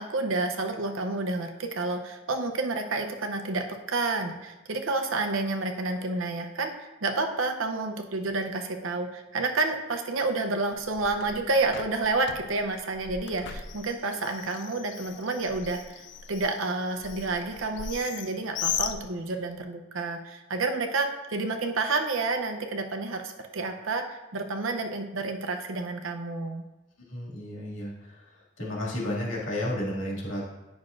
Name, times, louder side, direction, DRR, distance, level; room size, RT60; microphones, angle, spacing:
voice 1, 0.0-16.0 16.3-26.6, right 3 dB, 85° right, 5 dB, 0.7 m, -29 dB
Bird, 10.7-19.6, left 8 dB, 60° left, 0.4 m, -38 dB
voice 2, 27.1-28.2 28.6-30.5, left 1 dB, 80° left, -5 dB, 2.3 m, -32 dB
9.6 x 6.0 x 2.5 m, 1.0 s
head